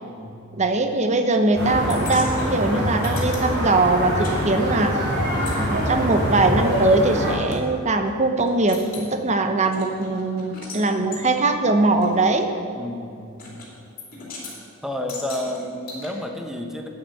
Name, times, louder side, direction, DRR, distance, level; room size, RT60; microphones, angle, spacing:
voice 1, 0.0-0.4 12.8-13.7 14.8-16.9, left 1 dB, ahead, 3 dB, 0.8 m, -31 dB
voice 2, 0.6-4.9 5.6-12.5, right 2 dB, 30° right, 6 dB, 0.8 m, -21 dB
sound 1, 1.5-7.3, equal, 55° right, 3.0 m, -24 dB
sound 2, 1.9-4.4 4.6-7.6 8.1-8.2 8.5-9.1 9.6-10.8 11.1-11.2 12.0-12.1 13.4-13.7 14.0-14.6 15.1-16.1, left 3 dB, 40° left, 2.7 m, -39 dB
9.0 x 8.2 x 6.4 m, 2.6 s
head